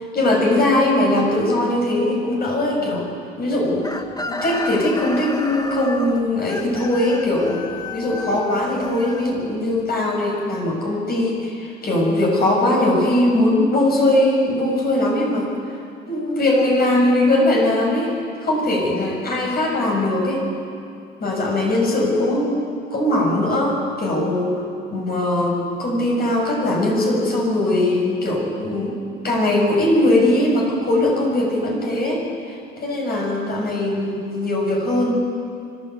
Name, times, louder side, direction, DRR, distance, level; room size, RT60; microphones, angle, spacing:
voice 1, 0.1-3.1 3.4-3.9 4.3-7.7 7.9-15.8 16.1-18.1 18.4-20.4 21.2-24.6 24.9-32.2 32.8-35.2, left 1 dB, 50° left, -1 dB, 7.5 m, -20 dB
Chicken rooster, 3.8-9.8, left 2 dB, 20° left, 1.5 m, -32 dB
24.0 x 14.5 x 8.6 m, 2.4 s
cardioid pair, 90°, 20 cm